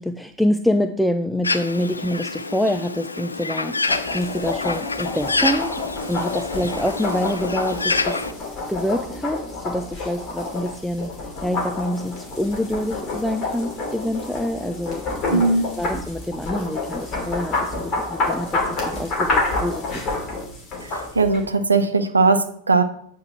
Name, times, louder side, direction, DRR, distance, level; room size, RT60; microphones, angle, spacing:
voice 1, 0.0-3.8 4.1-5.7 6.1-8.2 8.7-11.1 11.4-15.0 15.3-15.4 15.8-20.0, left 1 dB, ahead, 8 dB, 0.4 m, -26 dB
Bird, 1.4-8.3, left 3 dB, 80° left, 0.4 m, -27 dB
sound 1, 3.9-21.4, left 3 dB, 35° left, 2.8 m, -28 dB
voice 2, 15.3-15.7 20.8-22.8, right 3 dB, 75° right, 9 dB, 0.8 m, -19 dB
8.8 x 4.6 x 4.3 m, 0.68 s
figure-of-eight pair, 90°, 0 cm